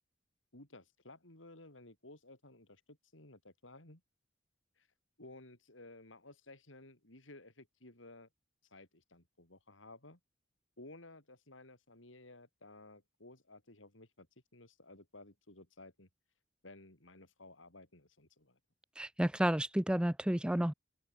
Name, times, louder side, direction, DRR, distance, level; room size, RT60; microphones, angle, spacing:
voice 1, 0.5-4.0 4.8-4.9 5.2-8.3 8.7-10.2 10.8-14.3 14.5-16.1 16.6-18.6, left 2 dB, 85° left, 6.2 m, -56 dB
voice 2, 19.0-20.7, right 1 dB, 5° right, 0.4 m, -31 dB
open air
head